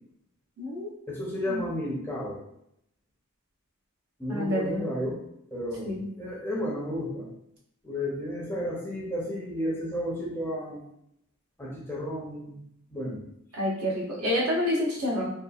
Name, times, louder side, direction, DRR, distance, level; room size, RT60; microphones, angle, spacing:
voice 1, 0.6-0.9 1.5-1.7 4.3-4.9 5.8-6.1 13.5-15.3, left 1 dB, 75° right, -4 dB, 0.9 m, -28 dB
voice 2, 1.1-2.4 4.2-5.2 5.5-7.3 7.8-10.9 11.6-12.6 12.9-13.2, equal, 10° left, -5 dB, 0.5 m, -32 dB
2.8 x 2.4 x 2.3 m, 0.77 s
head